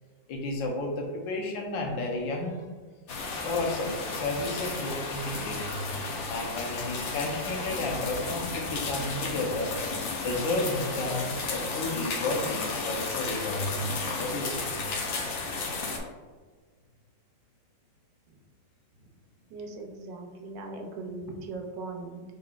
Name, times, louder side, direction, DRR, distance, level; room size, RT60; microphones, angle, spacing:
voice 1, 0.3-2.7 3.4-5.9 6.3-9.8 10.2-13.9 14.2-14.8, left 2 dB, 80° left, 1 dB, 1.4 m, -32 dB
sound 1, 3.1-16.0, left 3 dB, 65° left, 0.7 m, -33 dB
voice 2, 19.5-22.2, right 3 dB, 75° right, 2 dB, 1.3 m, -39 dB
5.2 x 3.7 x 2.3 m, 1.4 s
omnidirectional pair, 2.0 m